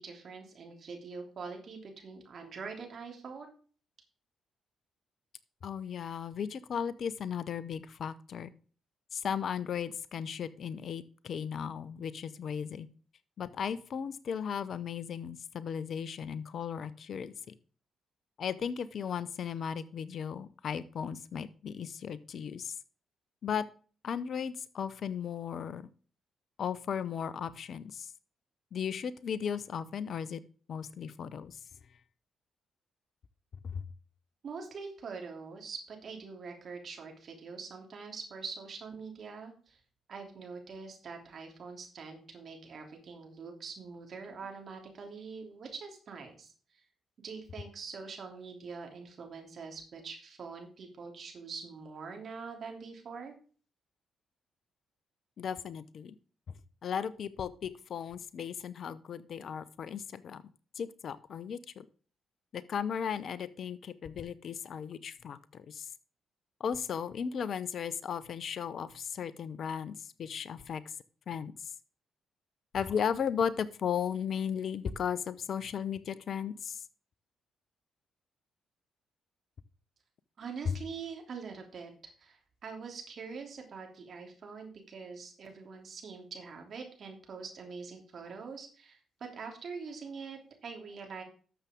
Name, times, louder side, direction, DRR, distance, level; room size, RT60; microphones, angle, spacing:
voice 1, 0.0-3.5 34.4-39.8 40.1-46.8 47.2-53.3 80.4-81.9 82.2-91.2, right 5 dB, 55° right, 2 dB, 3.1 m, -44 dB
voice 2, 5.6-8.5 9.1-12.9 13.4-17.5 18.4-22.8 23.4-23.6 24.0-25.9 26.6-28.1 28.7-30.4 30.7-31.6 33.6-33.8 55.4-56.1 56.8-60.4 60.8-61.9 62.5-65.9 66.6-70.8 71.3-71.7 72.7-76.8, left 7 dB, 60° left, 17 dB, 0.8 m, -36 dB
12.5 x 7.0 x 3.7 m, 0.40 s
hypercardioid pair, 45°, 0 cm